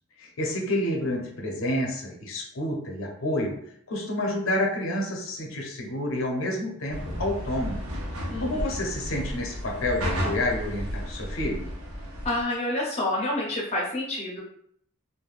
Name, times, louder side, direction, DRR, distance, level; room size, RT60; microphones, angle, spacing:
voice 1, 0.2-3.6 3.9-7.8 8.4-11.7, left 1 dB, 70° left, 0 dB, 0.6 m, -29 dB
sound 1, 6.9-12.4, equal, 90° right, 0.6 m, -33 dB
voice 2, 8.3-8.8 12.2-14.4, left 1 dB, 30° left, -3 dB, 0.6 m, -28 dB
3.3 x 2.1 x 2.4 m, 0.67 s
head